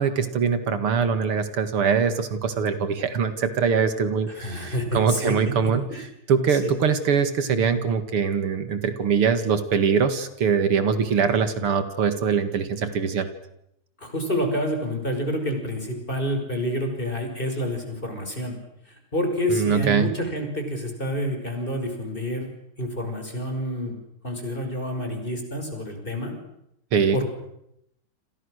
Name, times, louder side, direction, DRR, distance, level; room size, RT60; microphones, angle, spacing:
voice 1, 0.0-5.8 6.3-13.3 19.5-20.1 26.9-27.2, right 6 dB, 75° right, 10 dB, 2.8 m, -23 dB
voice 2, 4.3-6.0 6.5-6.7 14.0-18.6 18.9-22.5 22.8-24.0 24.2-26.3 27.1-27.2, equal, 20° left, 4 dB, 5.9 m, -28 dB
29.0 x 27.0 x 6.5 m, 0.79 s
omnidirectional pair, 2.4 m